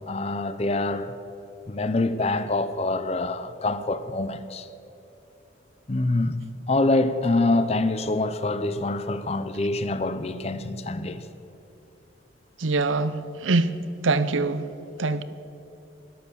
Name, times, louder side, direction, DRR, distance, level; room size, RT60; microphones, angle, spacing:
voice 1, 0.1-1.1 1.7-4.7 5.9-6.4 6.7-11.2, left 2 dB, 30° left, 0.5 m, -25 dB
voice 2, 12.6-13.7 14.0-14.7 15.0-15.2, right 3 dB, 90° right, 0.7 m, -24 dB
12.5 x 11.5 x 7.1 m
head